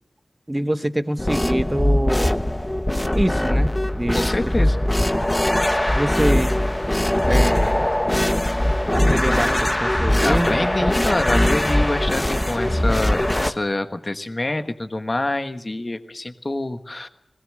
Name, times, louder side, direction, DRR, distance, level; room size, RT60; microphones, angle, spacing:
voice 1, 0.5-2.3 3.1-4.3 6.0-6.5 7.3-7.9 8.9-10.9, right 1 dB, 15° right, 12 dB, 0.9 m, -25 dB
sound 1, 1.2-13.5, left 1 dB, 15° left, 0.9 m, -21 dB
voice 2, 4.1-4.8 10.2-17.1, left 2 dB, 35° left, 8 dB, 1.4 m, -26 dB
21.0 x 18.5 x 7.6 m, 0.81 s
wide cardioid pair, 95°, 0 cm